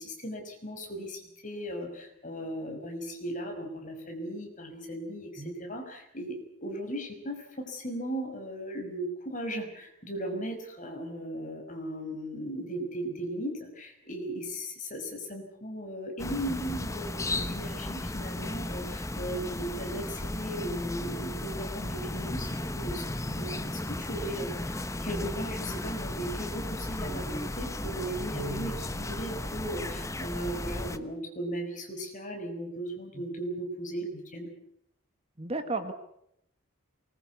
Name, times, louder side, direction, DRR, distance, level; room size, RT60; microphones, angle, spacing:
voice 1, 0.0-34.5, right 1 dB, 35° left, 3 dB, 5.8 m, -37 dB
sound 1, 16.2-31.0, left 1 dB, 15° left, 1.0 m, -35 dB
voice 2, 28.3-28.8 33.1-33.2 35.4-35.9, right 2 dB, 30° right, 8 dB, 1.7 m, -34 dB
24.0 x 21.0 x 8.3 m, 0.75 s
head